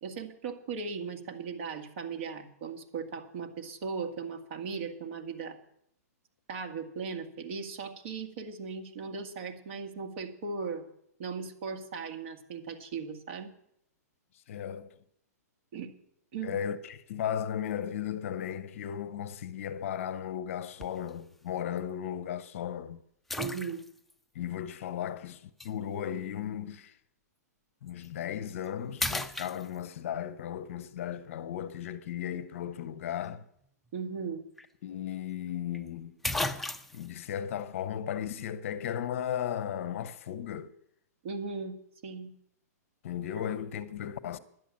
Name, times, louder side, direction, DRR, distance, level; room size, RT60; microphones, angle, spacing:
voice 1, 0.0-5.6 6.5-10.9 11.2-13.5 15.7-15.9 16.3-16.6 23.4-23.8 33.9-34.4 41.2-41.8 42.0-42.3, right 5 dB, 45° right, 1.8 m, -38 dB
voice 2, 14.5-14.9 16.4-23.0 24.3-26.9 27.8-33.4 34.8-36.2 36.9-40.7 43.0-44.4, left 9 dB, 50° left, 0.8 m, -36 dB
sound 1, 20.8-21.1 21.8-21.9 23.3-24.1 25.6-25.7 27.9-28.1 28.5-28.7 29.0-30.1 34.2-34.3 34.6-34.7 35.7-35.8 36.2-37.1, left 2 dB, ahead, 0.4 m, -34 dB
11.0 x 10.0 x 7.4 m
hypercardioid pair, 155°, 9 cm